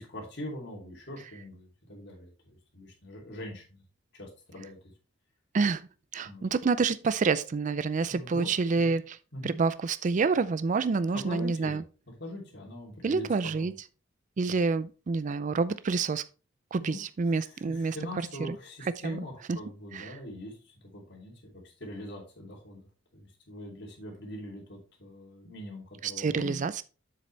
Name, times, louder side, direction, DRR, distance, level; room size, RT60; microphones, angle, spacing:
voice 1, 0.0-3.8 4.1-4.9 6.2-6.5 8.1-8.5 8.7-8.9 9.3-9.5 11.1-11.8 12.1-13.3 13.6-13.7 14.4-14.5 16.8-17.0 17.4-22.9 23.1-26.7, left 1 dB, 60° left, 3.1 m, -42 dB
voice 2, 5.5-5.9 6.1-9.2 9.4-11.8 13.0-13.7 14.4-16.2 16.7-18.0 18.5-18.6 19.0-19.2 19.5-19.6 19.9-20.2 26.0-26.8, right 4 dB, 40° right, 0.4 m, -28 dB
7.7 x 6.6 x 3.2 m
head